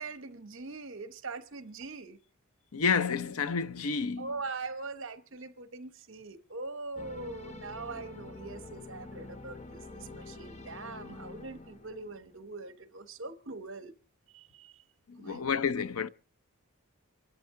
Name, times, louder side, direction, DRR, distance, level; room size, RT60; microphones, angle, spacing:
voice 1, 0.0-2.2 4.2-14.0 14.3-14.7 15.2-15.5, right 3 dB, 60° right, 1.0 m, -42 dB
voice 2, 2.7-4.3 15.1-16.1, left 5 dB, 85° left, 0.7 m, -30 dB
sound 1, 7.0-12.5, left 3 dB, 30° left, 0.8 m, -47 dB
27.0 x 12.0 x 3.7 m
head